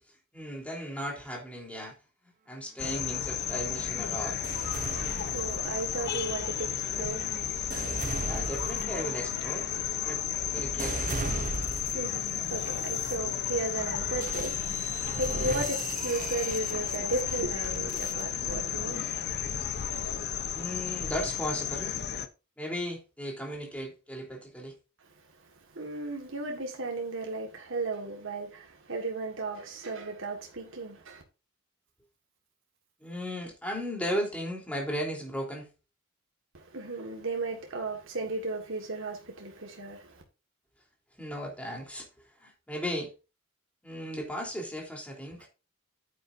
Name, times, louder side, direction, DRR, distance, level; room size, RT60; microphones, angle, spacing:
voice 1, 0.3-1.9 2.2-4.4 8.2-9.7 10.0-10.2 10.5-11.2 20.5-22.0 22.6-24.7 33.0-35.7 41.2-42.1 42.4-43.1 43.8-45.5, equal, 5° left, 3.4 m, -36 dB
sound 1, 2.8-22.3, left 9 dB, 50° left, 0.8 m, -33 dB
sound 2, 4.4-6.0 6.7-12.2 12.8-13.2 14.2-18.2, right 3 dB, 40° right, 0.7 m, -38 dB
voice 2, 4.9-7.4 11.6-19.1 25.7-31.2 36.5-40.2, right 2 dB, 65° right, 1.6 m, -35 dB
9.4 x 8.8 x 2.6 m
head